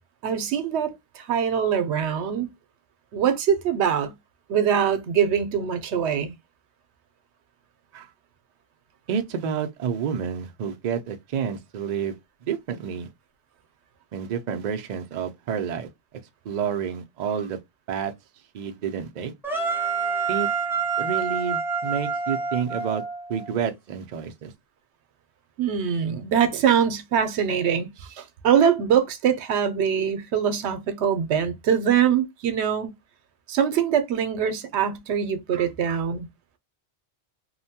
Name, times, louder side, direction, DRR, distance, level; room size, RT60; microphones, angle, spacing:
voice 1, 0.2-2.5 3.1-4.1 4.5-6.3 25.6-27.9 28.1-32.9 33.5-36.3, right 8 dB, 75° right, 0.9 m, -23 dB
voice 2, 9.1-12.2 12.5-13.1 14.1-15.9 16.5-17.6 17.9-18.1 18.5-19.3 20.3-20.5 21.0-23.0 23.3-24.5 35.5-36.0, right 7 dB, 55° right, 0.5 m, -29 dB
sound 1, 19.4-23.5, right 5 dB, 5° right, 0.5 m, -27 dB
2.8 x 2.1 x 2.7 m
omnidirectional pair, 1.1 m